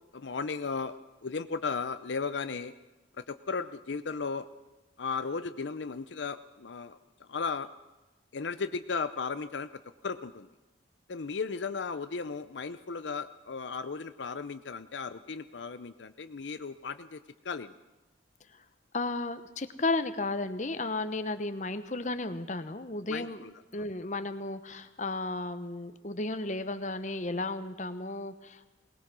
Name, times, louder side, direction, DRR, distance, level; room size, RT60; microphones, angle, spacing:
voice 1, 0.1-1.0 1.2-2.7 3.2-4.5 5.0-7.7 8.3-9.7 10.0-10.5 11.1-17.2 17.4-17.7 23.1-23.5, left 5 dB, 75° left, 11 dB, 0.6 m, -35 dB
voice 2, 18.9-23.4 23.7-28.7, left 2 dB, 40° left, 10 dB, 1.0 m, -34 dB
21.5 x 19.5 x 6.2 m, 1.1 s
head